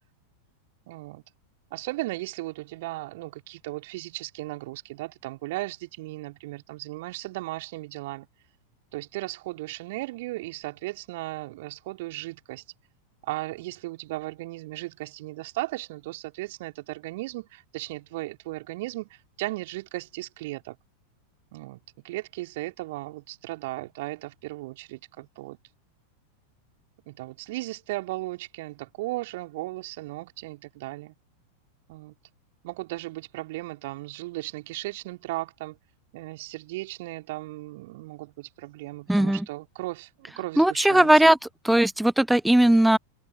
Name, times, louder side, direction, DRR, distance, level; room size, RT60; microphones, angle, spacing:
voice 1, 0.9-1.2 1.7-8.3 8.9-12.6 13.2-19.1 19.4-20.8 21.5-21.8 22.0-25.6 27.1-31.1 31.9-32.1 32.6-35.8 36.1-41.1, right 19 dB, 50° right, 4.0 m, -36 dB
voice 2, 39.1-39.4 40.6-41.4 41.6-43.0, right 1 dB, 5° right, 0.3 m, -18 dB
figure-of-eight pair, 90°, 0 cm